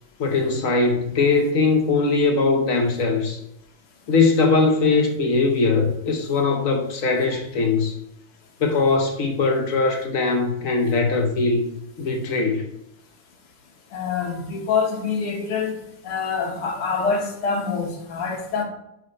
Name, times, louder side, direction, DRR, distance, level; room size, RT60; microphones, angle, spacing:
voice 1, 0.2-3.4 4.1-8.0 8.6-11.7 12.0-12.7, left 3 dB, 60° left, 3 dB, 0.9 m, -20 dB
voice 2, 13.9-15.8 16.0-18.6, left 5 dB, 80° left, 1 dB, 2.2 m, -25 dB
5.6 x 4.8 x 4.9 m, 0.80 s
omnidirectional pair, 2.4 m